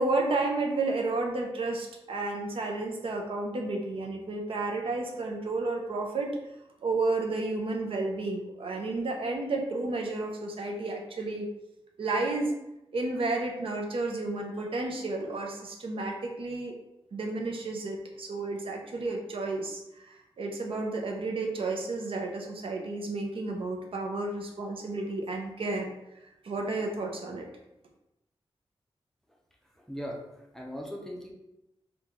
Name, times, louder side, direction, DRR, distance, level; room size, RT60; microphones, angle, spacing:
voice 1, 0.0-6.4 6.8-11.5 12.0-12.5 12.9-16.7 17.1-19.8 20.1-25.9 26.4-27.5, right 2 dB, 70° right, 1 dB, 0.5 m, -31 dB
voice 2, 29.7-31.3, equal, 5° left, -1 dB, 0.5 m, -39 dB
3.0 x 2.2 x 3.7 m, 0.90 s
wide cardioid pair, 160°, 10 cm